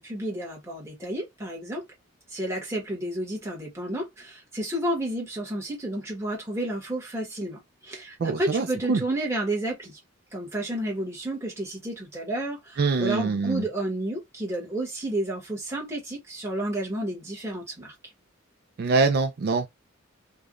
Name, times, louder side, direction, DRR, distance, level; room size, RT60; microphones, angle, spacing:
voice 1, 0.0-1.8 2.3-10.0 10.3-17.9, right 1 dB, 15° right, 1.2 m, -31 dB
voice 2, 8.2-9.0 12.8-13.7 18.8-19.7, right 4 dB, 50° right, 0.3 m, -24 dB
3.3 x 2.2 x 2.4 m
head